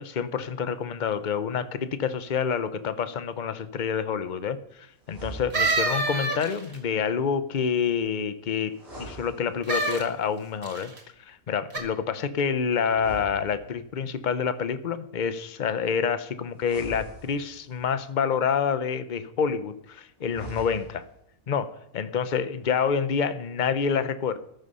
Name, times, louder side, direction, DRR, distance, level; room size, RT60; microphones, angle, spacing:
voice 1, 0.0-10.9 11.3-21.0 21.5-24.4, left 6 dB, 40° left, 12 dB, 0.8 m, -28 dB
sound 1, 5.0-6.0 8.7-10.0 12.9-14.1 16.6-17.8 20.2-21.2, right 2 dB, 30° right, 5.6 m, -42 dB
sound 2, 5.5-6.8 9.6-10.0 10.6-11.0 11.7-11.8, right 2 dB, 70° right, 3.0 m, -26 dB
13.5 x 11.5 x 5.5 m, 0.75 s
omnidirectional pair, 1.5 m